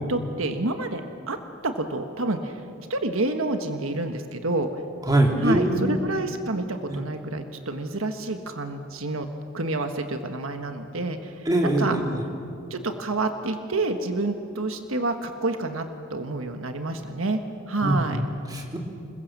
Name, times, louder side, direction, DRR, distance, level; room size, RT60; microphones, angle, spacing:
voice 1, 0.1-1.4 1.6-2.6 2.9-4.7 5.4-9.3 9.5-12.0 12.7-17.4 17.7-18.2, right 2 dB, 75° right, 6 dB, 1.5 m, -28 dB
voice 2, 5.1-6.0 6.9-7.0 11.4-12.2 17.8-18.8, right 1 dB, 20° right, 1 dB, 2.9 m, -23 dB
27.5 x 21.0 x 7.4 m, 2.5 s
head